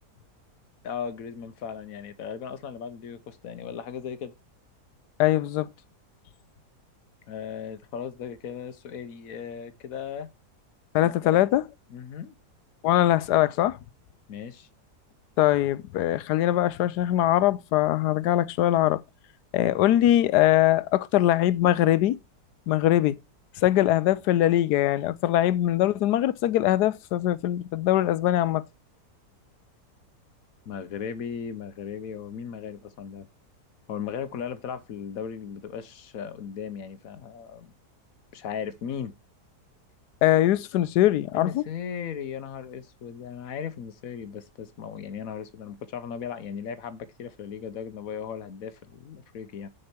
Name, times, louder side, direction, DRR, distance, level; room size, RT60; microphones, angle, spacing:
voice 1, 0.8-4.3 7.3-10.3 11.0-11.4 11.9-12.4 14.3-14.7 30.7-33.3 33.9-37.7 38.3-39.1 41.3-49.7, left 7 dB, 60° left, 1.2 m, -37 dB
voice 2, 5.2-5.7 10.9-11.6 12.8-13.8 15.4-19.0 19.5-22.2 22.7-23.2 23.6-28.6 40.2-41.6, left 13 dB, 80° left, 1.2 m, -22 dB
6.6 x 5.4 x 4.4 m
omnidirectional pair, 1.8 m